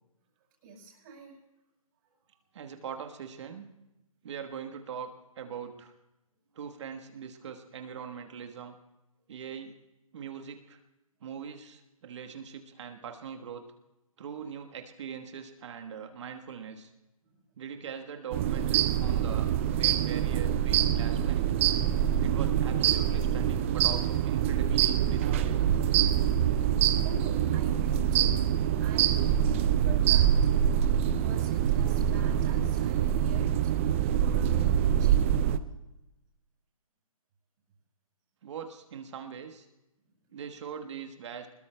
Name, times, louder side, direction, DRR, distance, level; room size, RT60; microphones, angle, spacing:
voice 1, 0.6-1.3 17.2-17.4 27.0-30.3 31.1-35.2, right 3 dB, 35° right, -4 dB, 4.9 m, -46 dB
voice 2, 2.5-3.7 4.2-5.9 6.5-8.7 9.3-9.7 10.1-10.8 11.2-13.6 14.2-16.9 17.6-21.4 22.2-25.7 38.4-39.7 40.3-41.5, right 7 dB, 50° right, 5 dB, 1.3 m, -42 dB
sound 1, 18.3-35.6, right 10 dB, 20° right, 0.4 m, -25 dB
25.0 x 20.5 x 2.2 m, 0.97 s
hypercardioid pair, 145°, 18 cm